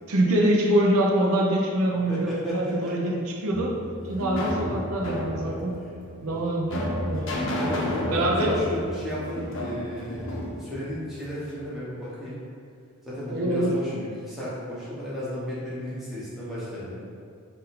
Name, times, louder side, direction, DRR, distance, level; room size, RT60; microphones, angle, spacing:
voice 1, 0.1-3.8 4.1-5.7 6.2-7.6 8.1-8.6 13.3-13.7, right 1 dB, 75° right, -1 dB, 0.5 m, -24 dB
voice 2, 2.1-3.1 5.3-5.6 6.2-6.5 7.5-12.4 13.0-17.0, equal, ahead, -10 dB, 1.0 m, -34 dB
sound 1, 3.5-11.6, left 1 dB, 60° left, 0.6 m, -32 dB
3.9 x 2.6 x 4.1 m, 2.3 s
head